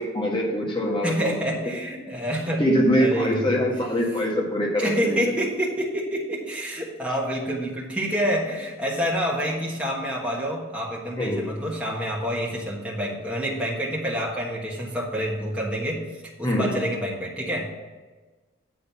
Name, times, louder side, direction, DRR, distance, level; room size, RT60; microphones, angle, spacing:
voice 1, 0.0-1.3 2.6-5.3 11.2-11.5 16.4-16.8, equal, 25° left, -2 dB, 1.5 m, -23 dB
voice 2, 1.0-2.6 3.0-3.6 4.8-16.0 16.4-17.7, equal, 5° right, -5 dB, 1.4 m, -27 dB
9.0 x 3.9 x 6.9 m, 1.3 s
head